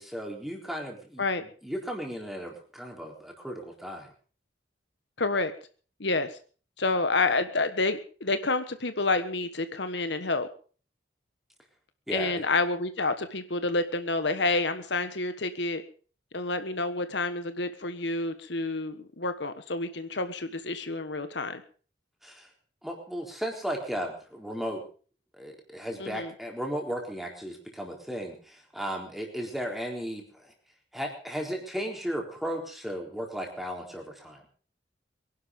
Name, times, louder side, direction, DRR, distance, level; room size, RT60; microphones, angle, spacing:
voice 1, 0.0-1.2 1.6-4.1 12.1-12.4 22.2-22.5 22.8-24.8 25.4-30.5 30.9-34.4, equal, ahead, 1 dB, 4.0 m, -35 dB
voice 2, 5.2-5.5 6.0-6.3 6.8-10.5 12.1-15.8 16.3-21.6 26.0-26.3, left 3 dB, 70° left, 10 dB, 1.5 m, -29 dB
23.5 x 11.5 x 5.3 m, 0.41 s
head